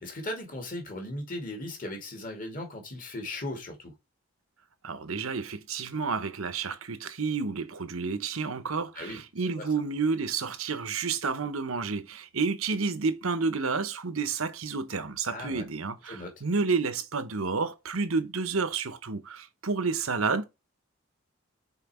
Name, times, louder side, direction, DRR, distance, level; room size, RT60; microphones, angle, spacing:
voice 1, 0.0-3.9 9.0-9.2 9.5-9.7 15.3-15.6 16.1-16.3, left 1 dB, 40° left, 2.4 m, -37 dB
voice 2, 4.8-20.4, right 4 dB, 85° right, 1.0 m, -30 dB
5.8 x 4.5 x 4.4 m
head